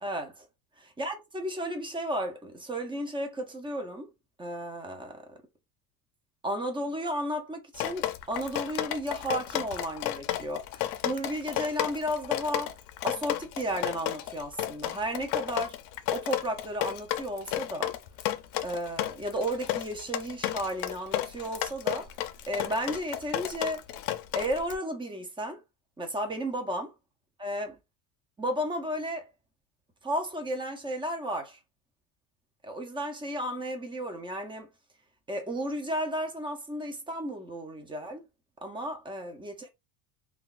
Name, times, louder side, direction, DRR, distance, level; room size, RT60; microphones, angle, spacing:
voice 1, 0.0-0.5 0.8-4.1 4.4-5.4 6.4-12.7 13.0-15.8 16.1-17.9 18.6-22.1 22.5-23.8 24.4-25.6 26.0-26.9 27.4-27.8 28.4-29.3 30.0-31.6 32.6-34.7 35.3-38.2 38.6-39.7, equal, 10° right, 0.5 m, -33 dB
Drip, 7.7-24.8, left 13 dB, 65° left, 0.6 m, -32 dB
3.7 x 2.2 x 2.4 m
cardioid pair, 145°, 44 cm